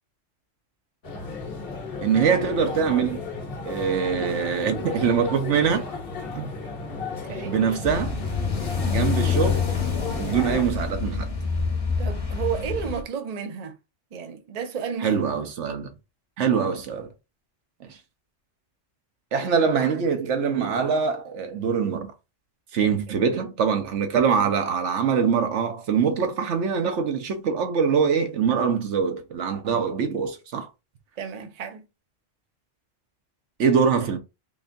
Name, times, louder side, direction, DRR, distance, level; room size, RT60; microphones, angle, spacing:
sound 1, 1.0-10.6, left 4 dB, 50° left, 1.1 m, -34 dB
voice 1, 2.0-3.2 3.7-5.8 6.4-6.5 7.4-8.2 8.8-9.7 10.1-11.3 15.0-15.9 16.4-17.1 17.8-18.0 19.3-22.1 22.7-30.7 33.6-34.2, right 6 dB, 70° right, 1.1 m, -23 dB
voice 2, 7.2-7.6 12.0-13.8 14.1-15.2 16.5-16.7 22.8-23.1 31.2-31.8, right 7 dB, 40° right, 0.7 m, -32 dB
sound 2, 7.8-13.0, left 5 dB, 30° left, 0.9 m, -26 dB
3.7 x 3.3 x 2.6 m
omnidirectional pair, 1.3 m